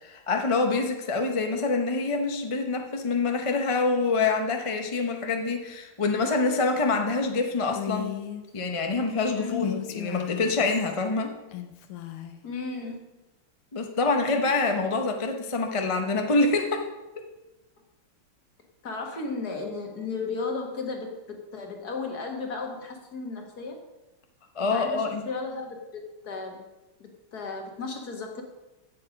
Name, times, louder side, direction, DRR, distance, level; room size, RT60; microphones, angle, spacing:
voice 1, 0.0-8.1 8.5-11.3 13.7-16.9 24.5-25.2, left 3 dB, 30° left, 4 dB, 0.5 m, -26 dB
Female speech woman speaking, 7.7-8.4 9.5-11.0 11.5-12.4, left 11 dB, 85° left, 1.8 m, -36 dB
voice 2, 9.3-9.8 12.4-13.0 18.8-23.8 24.6-26.6 27.0-28.4, left 4 dB, 50° left, 2 dB, 2.1 m, -34 dB
16.0 x 6.9 x 5.3 m, 1.1 s
omnidirectional pair, 2.3 m